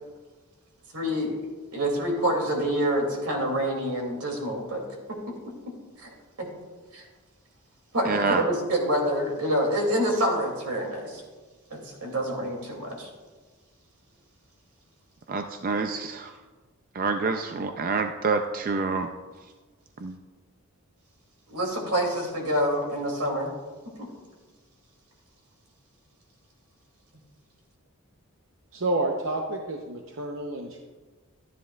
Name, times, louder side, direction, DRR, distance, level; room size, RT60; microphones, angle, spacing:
voice 1, 0.9-1.3 1.7-4.8 6.0-6.5 6.9-7.0 7.9-11.2 11.7-13.1 21.5-23.5, equal, 85° right, 1 dB, 2.6 m, -27 dB
voice 2, 8.0-8.4 15.3-16.3 16.9-19.1 20.0-20.2, right 4 dB, 40° right, 6 dB, 0.4 m, -27 dB
voice 3, 28.7-30.8, right 2 dB, 60° right, 2 dB, 0.7 m, -29 dB
12.5 x 10.0 x 2.3 m, 1.3 s
head